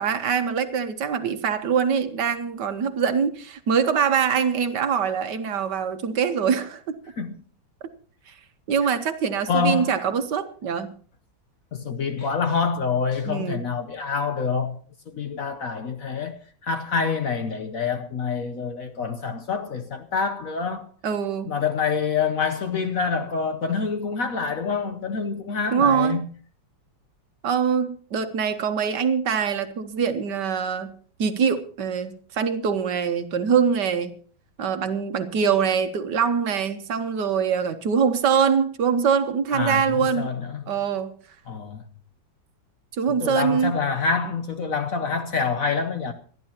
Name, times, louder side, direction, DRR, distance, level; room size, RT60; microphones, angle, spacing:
voice 1, 0.0-7.0 8.3-8.4 8.7-10.9 13.2-13.6 21.0-21.5 25.7-26.2 27.4-30.9 31.2-34.1 34.6-40.3 40.7-41.1 43.0-43.8, right 6 dB, 65° right, 1.5 m, -23 dB
voice 2, 9.5-9.9 11.7-14.8 15.1-20.9 21.5-26.3 39.5-40.8 41.5-41.8 43.1-46.1, left 5 dB, 55° left, 1.1 m, -26 dB
26.5 x 11.0 x 2.9 m
omnidirectional pair, 2.1 m